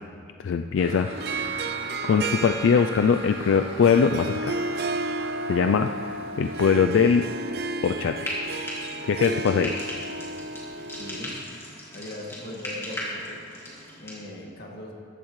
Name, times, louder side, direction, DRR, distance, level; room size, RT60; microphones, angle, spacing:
voice 1, 0.4-1.1 1.5-1.6 2.0-4.5 5.5-7.3 7.8-8.3 9.0-9.7, left 6 dB, 80° left, 7 dB, 0.3 m, -22 dB
sound 1, 0.8-7.4, right 1 dB, 30° right, 2.0 m, -41 dB
Harp, 1.1-11.4, right 3 dB, 55° right, 0.5 m, -32 dB
Frying (food), 8.2-14.2, left 1 dB, 15° left, 2.0 m, -37 dB
voice 2, 11.0-11.4 11.9-13.4 14.0-14.9, left 1 dB, 55° left, -1 dB, 1.7 m, -39 dB
13.5 x 12.5 x 3.1 m, 2.4 s
head